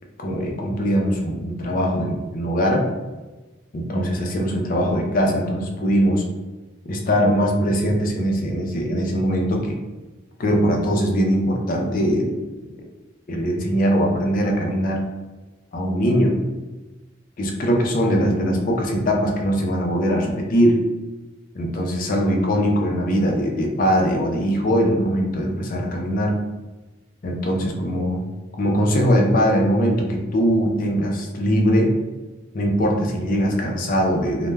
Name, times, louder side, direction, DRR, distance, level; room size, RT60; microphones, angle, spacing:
voice 1, 0.2-2.9 3.7-6.2 6.9-9.7 10.4-12.4 12.6-12.7 13.3-15.0 15.7-16.4 17.4-20.8 21.5-26.4 27.2-28.2 28.6-31.9 32.5-34.5, equal, 40° left, 1 dB, 0.4 m, -21 dB
2.2 x 2.1 x 3.2 m, 1.2 s
head